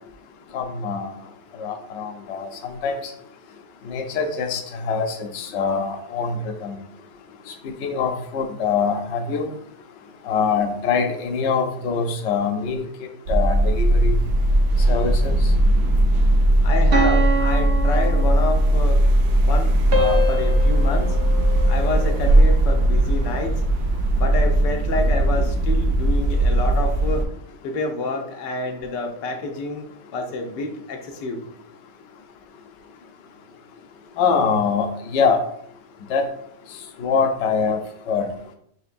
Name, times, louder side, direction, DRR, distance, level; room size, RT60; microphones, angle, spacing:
voice 1, 0.5-1.1 1.6-3.1 3.8-6.8 7.8-9.5 10.2-12.8 13.3-14.1 14.9-15.5 34.2-35.4 36.1-36.3 37.0-37.8 38.1-38.3, left 5 dB, 65° left, 4 dB, 0.6 m, -24 dB
sound 1, 13.3-27.3, right 1 dB, 75° right, 1.2 m, -18 dB
voice 2, 16.6-19.0 19.4-21.2 21.7-23.6 24.1-27.2 27.6-29.8 30.1-31.4, left 3 dB, 85° left, 4 dB, 1.4 m, -28 dB
sound 2, 16.9-18.9 19.9-22.3, right 1 dB, 60° right, 0.7 m, -26 dB
5.9 x 2.9 x 2.5 m, 0.68 s
omnidirectional pair, 1.8 m